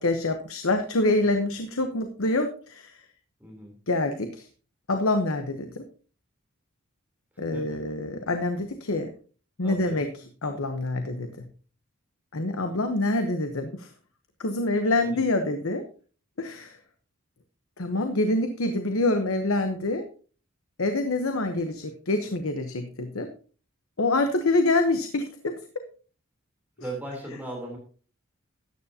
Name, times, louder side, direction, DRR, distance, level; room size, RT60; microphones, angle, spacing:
voice 1, 0.0-3.0 3.9-4.5 4.9-5.8 7.4-9.1 9.6-11.5 12.3-13.9 14.4-15.8 16.4-16.8 17.8-20.1 20.8-23.3 24.0-25.5 26.8-26.9, left 2 dB, 70° left, 7 dB, 1.0 m, -26 dB
voice 2, 3.4-3.7 7.5-7.8 9.6-10.0 15.0-15.2 26.8-27.8, right 1 dB, 10° right, -2 dB, 3.4 m, -37 dB
13.5 x 9.5 x 2.8 m, 0.39 s
head